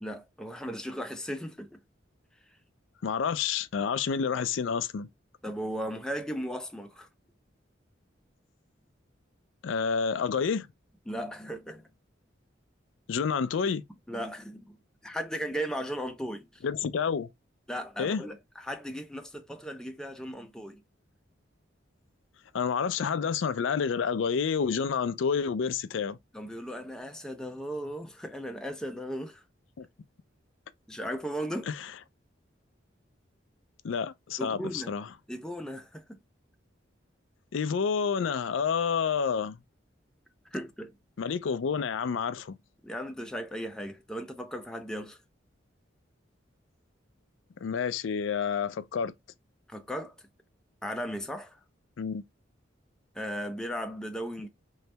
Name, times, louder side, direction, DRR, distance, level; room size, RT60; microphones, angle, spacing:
voice 1, 0.0-1.8 5.4-7.1 11.1-11.9 14.1-14.8 15.0-16.6 17.7-20.8 26.3-29.4 30.9-31.7 34.4-34.9 35.3-36.2 40.5-41.0 42.8-45.2 49.7-50.3 50.8-51.6 53.1-54.5, equal, 5° left, 0.5 m, -36 dB
voice 2, 3.0-5.1 9.6-10.7 13.1-13.8 16.6-17.3 18.0-18.2 22.5-26.2 29.8-29.9 31.7-31.9 33.8-35.0 37.5-39.6 41.2-42.6 47.6-49.1 52.0-52.2, left 6 dB, 80° left, 0.4 m, -29 dB
3.1 x 2.8 x 3.3 m
head